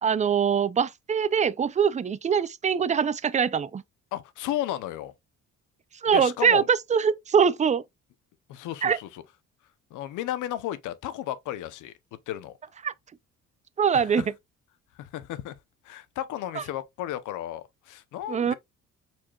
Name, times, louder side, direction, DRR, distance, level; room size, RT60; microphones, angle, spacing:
voice 1, 0.0-3.8 6.0-7.8 8.8-9.0 12.8-12.9 13.8-14.2 16.6-16.7 18.3-18.5, right 7 dB, 25° right, 0.4 m, -23 dB
voice 2, 4.1-5.1 6.1-6.6 8.5-9.2 9.9-11.9 12.3-12.6 13.9-14.3 15.0-15.5 15.8-18.5, left 12 dB, 85° left, 0.7 m, -34 dB
4.5 x 4.3 x 2.3 m
cardioid pair, 90°, 30 cm